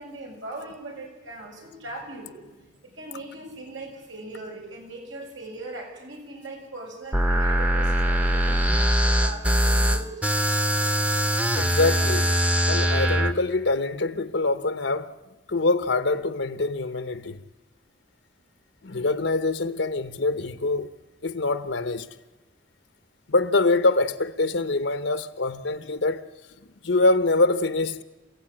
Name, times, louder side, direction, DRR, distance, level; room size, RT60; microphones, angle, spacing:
voice 1, 0.0-10.1, right 2 dB, 80° right, 7.3 m, -40 dB
sound 1, 7.1-13.3, equal, 5° right, 0.9 m, -22 dB
voice 2, 11.6-12.4 12.7-15.1 15.5-17.4 18.8-20.9 21.2-22.1 23.3-26.2 26.8-28.0, left 2 dB, 70° left, 0.9 m, -24 dB
29.0 x 16.0 x 8.9 m
head